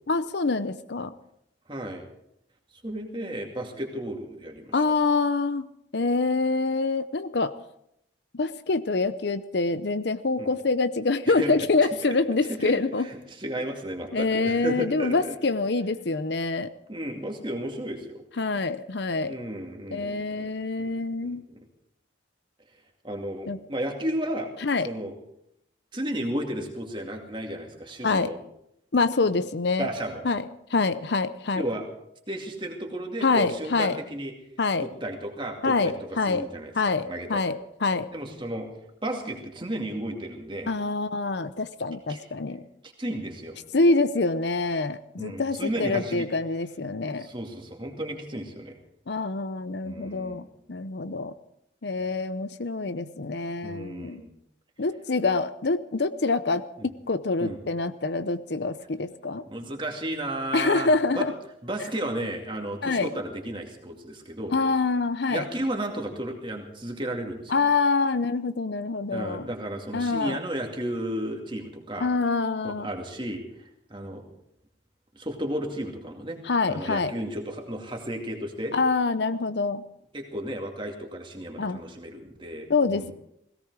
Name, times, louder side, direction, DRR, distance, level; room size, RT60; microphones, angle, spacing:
voice 1, 0.1-1.1 4.7-5.7 5.9-7.5 8.3-13.1 14.1-16.7 18.4-19.3 19.9-21.4 23.5-23.6 24.6-24.9 28.0-28.3 28.9-29.9 30.2-30.4 30.7-31.6 33.2-34.0 34.6-34.9 35.6-36.5 36.7-38.1 40.7-42.6 43.7-47.3 49.1-51.3 51.8-54.2 54.8-56.6 57.1-59.4 60.5-61.3 62.8-63.1 64.5-65.4 67.5-69.4 69.9-70.4 72.0-72.9 76.4-77.1 78.7-79.8 81.6-81.8 82.7-83.1, left 3 dB, 60° left, 13 dB, 0.7 m, -26 dB
voice 2, 1.7-2.0 2.8-4.7 10.4-10.5 11.3-11.5 11.8-12.2 12.4-15.4 16.9-18.2 19.3-21.6 23.0-24.5 24.8-25.2 25.9-28.4 29.8-30.3 31.6-31.8 32.3-34.3 34.8-37.4 38.1-38.7 39.0-40.7 42.1-42.2 42.8-43.6 45.2-46.3 47.2-48.8 49.8-50.5 53.6-54.3 56.8-56.9 57.4-57.6 59.4-61.3 61.6-64.5 65.3-67.7 69.1-72.1 72.6-74.2 75.1-76.4 76.7-78.7 80.1-83.1, right 1 dB, 25° right, 2 dB, 2.3 m, -33 dB
17.5 x 17.5 x 4.8 m, 0.77 s
head